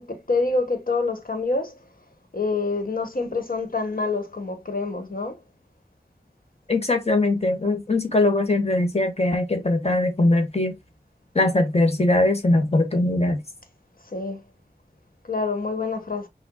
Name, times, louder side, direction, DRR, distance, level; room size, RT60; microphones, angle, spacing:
voice 1, 0.0-1.7 2.3-5.4 14.1-14.4 15.3-16.3, left 3 dB, 60° left, 1.3 m, -26 dB
voice 2, 6.7-10.7 11.3-13.4, left 2 dB, 40° left, 1.5 m, -21 dB
6.0 x 2.3 x 3.8 m
wide cardioid pair, 50°, 16 cm